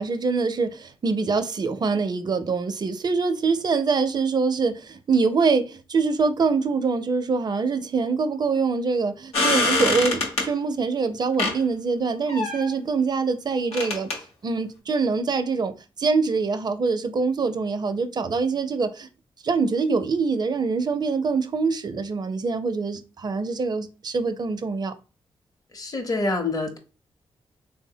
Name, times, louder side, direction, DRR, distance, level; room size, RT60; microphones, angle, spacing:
voice 1, 0.0-14.1 14.4-19.1 19.4-24.9, right 4 dB, 45° right, 0.5 m, -24 dB
sound 1, 9.3-10.5 11.4-11.6 12.3-12.7 13.7-14.2, left 3 dB, 90° left, 0.8 m, -24 dB
voice 2, 25.7-26.8, left 2 dB, 40° left, 0.7 m, -26 dB
3.5 x 2.0 x 2.7 m
cardioid pair, 60°, 10 cm